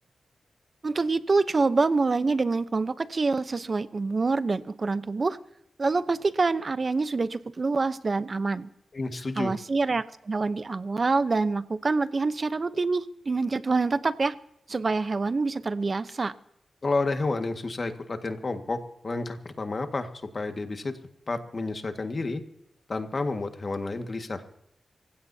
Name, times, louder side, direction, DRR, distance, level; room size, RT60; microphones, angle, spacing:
voice 1, 0.8-5.4 5.8-8.7 9.4-14.3 14.7-16.3, right 3 dB, 45° right, 13 dB, 0.8 m, -26 dB
voice 2, 8.9-9.5 16.8-18.8 19.0-21.0 21.3-22.4 22.9-24.4, left 3 dB, 45° left, 6 dB, 1.8 m, -30 dB
27.5 x 16.0 x 2.8 m, 0.78 s
cardioid pair, 80°, 0 cm